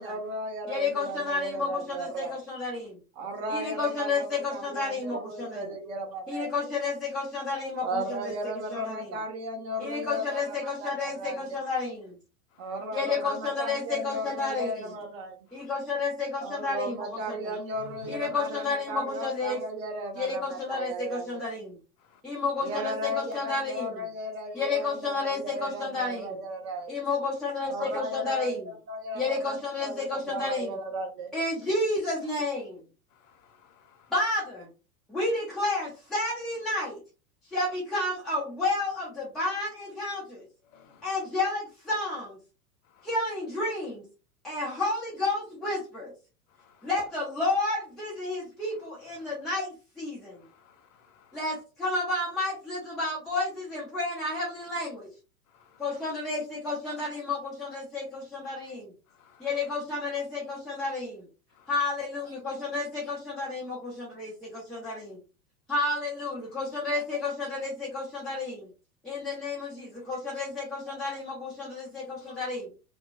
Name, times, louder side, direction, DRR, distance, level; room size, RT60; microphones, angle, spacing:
voice 1, 0.0-2.4 3.2-6.5 7.8-11.6 12.6-15.3 16.4-21.4 22.6-26.9 27.7-31.3, right 1 dB, 45° right, 1.0 m, -35 dB
voice 2, 0.7-3.0 3.5-5.7 6.3-9.1 9.8-12.1 12.9-14.8 15.5-17.5 18.1-19.6 20.2-21.8 22.2-24.0 24.5-26.4 26.9-28.7 29.2-30.7 31.3-32.8 34.1-34.7 35.1-37.0 37.4-40.4 41.0-42.4 43.0-44.1 44.4-46.1 46.8-50.4 51.3-55.1 55.8-58.9 59.4-61.2 61.7-65.2 65.7-68.7 69.0-72.7, left 3 dB, ahead, 0.4 m, -31 dB
voice 3, 12.5-12.9 15.5-15.7 17.7-18.3 22.0-22.2 33.1-34.1 40.6-41.3 42.8-43.2 44.5-44.7 46.5-46.9 48.7-49.3 50.3-51.6 55.5-56.1 58.6-58.7 59.2-59.7 61.5-61.7 70.0-70.1 72.1-72.3, left 5 dB, 55° left, 0.7 m, -56 dB
2.9 x 2.1 x 2.3 m
figure-of-eight pair, 90°, 45 cm